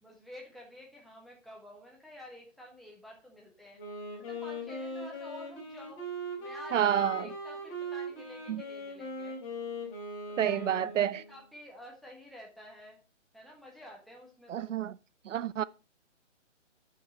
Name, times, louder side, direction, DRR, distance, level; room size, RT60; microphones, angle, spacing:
voice 1, 0.0-3.8 4.2-6.0 6.4-9.4 10.3-13.0 13.3-14.8, equal, ahead, 1.4 m, -50 dB
Wind instrument woodwind instrument, 3.8-11.4, equal, 25° left, 3.3 m, -40 dB
voice 2, 6.7-7.3 8.5-8.6 10.4-11.2 14.5-14.9 15.3-15.6, right 10 dB, 80° right, 0.5 m, -29 dB
7.9 x 6.0 x 4.4 m
hypercardioid pair, 145°, 37 cm